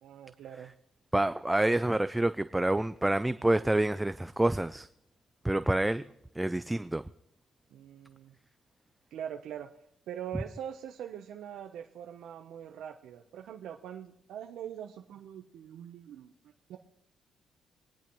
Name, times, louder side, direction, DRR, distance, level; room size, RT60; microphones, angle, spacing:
voice 1, 0.0-0.7 7.7-8.4 9.1-9.7 10.1-16.3 16.7-16.8, right 9 dB, 80° right, 3 dB, 0.8 m, -43 dB
voice 2, 1.1-4.9 5.4-6.0 6.4-7.0, right 1 dB, 10° right, 12 dB, 0.4 m, -27 dB
23.0 x 10.0 x 3.1 m, 0.78 s
cardioid pair, 90°, 0 cm